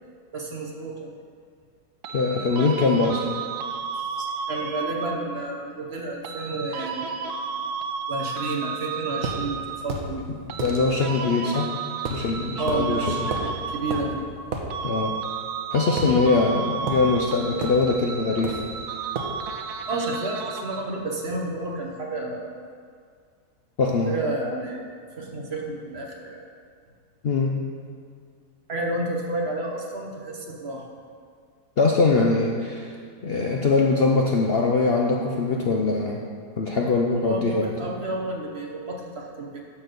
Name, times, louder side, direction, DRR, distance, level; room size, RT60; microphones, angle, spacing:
voice 1, 0.3-1.1 3.9-7.1 8.1-10.3 12.6-14.2 19.9-22.5 24.1-26.4 28.7-30.8 37.2-39.6, right 2 dB, 45° right, 0 dB, 1.1 m, -31 dB
sound 1, 2.0-5.4 6.2-10.0 10.5-14.4 14.7-21.0, right 5 dB, 85° right, 1.2 m, -33 dB
voice 2, 2.1-3.3 10.6-11.7 12.1-13.3 14.8-15.1 15.7-18.6 23.8-24.2 27.2-27.5 31.8-32.9 33.2-36.2 36.6-37.7, left 3 dB, 55° left, -1 dB, 0.7 m, -22 dB
sound 2, 9.2-9.4 9.9-10.1 10.6-10.8 12.1-12.3 12.7-12.8 13.3-13.5 13.9-14.1 14.5-14.7 16.0-16.5 16.9-17.1 17.6-17.8 18.4-18.7 19.2-19.4, right 3 dB, 65° right, 1.4 m, -31 dB
11.5 x 4.2 x 6.7 m, 2.1 s
omnidirectional pair, 1.7 m